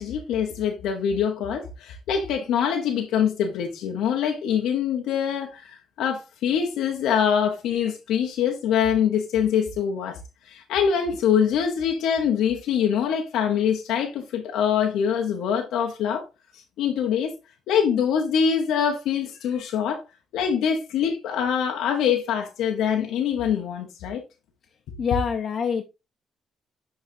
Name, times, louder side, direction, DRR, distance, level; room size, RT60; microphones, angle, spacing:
voice 1, 0.0-10.2 10.5-16.3 16.5-17.3 17.7-20.0 20.3-24.2, left 8 dB, 85° left, 1.0 m, -24 dB
voice 2, 25.0-25.8, left 7 dB, 50° left, 0.9 m, -25 dB
11.5 x 3.9 x 2.7 m
cardioid pair, 90°, 0 cm